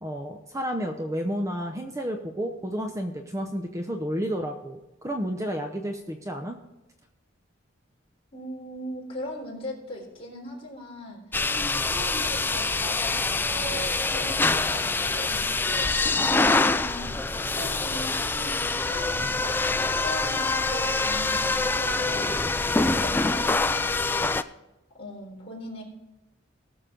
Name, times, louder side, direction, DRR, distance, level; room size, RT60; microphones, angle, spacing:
voice 1, 0.0-6.6, equal, 15° right, 4 dB, 0.7 m, -31 dB
voice 2, 8.3-19.6 20.0-22.4 22.7-24.6 24.9-25.8, left 1 dB, 30° left, -3 dB, 3.8 m, -39 dB
sound 1, 11.3-24.4, left 3 dB, 10° left, 0.3 m, -25 dB
19.0 x 6.7 x 3.8 m, 0.97 s
head